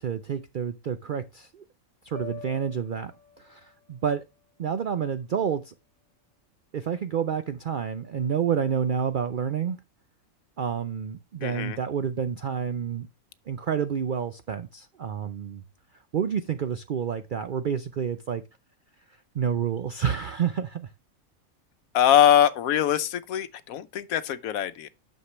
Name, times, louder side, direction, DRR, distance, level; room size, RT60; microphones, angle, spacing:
voice 1, 0.0-1.6 2.0-3.1 3.4-4.2 4.6-5.7 6.7-9.8 10.6-13.1 13.5-15.6 15.9-18.4 19.1-20.9, right 7 dB, 65° right, 0.5 m, -29 dB
sound 1, 2.1-6.4, left 6 dB, 25° left, 2.6 m, -48 dB
voice 2, 11.4-11.8 21.9-24.9, left 10 dB, 75° left, 1.1 m, -22 dB
9.8 x 6.6 x 3.0 m
omnidirectional pair, 1.5 m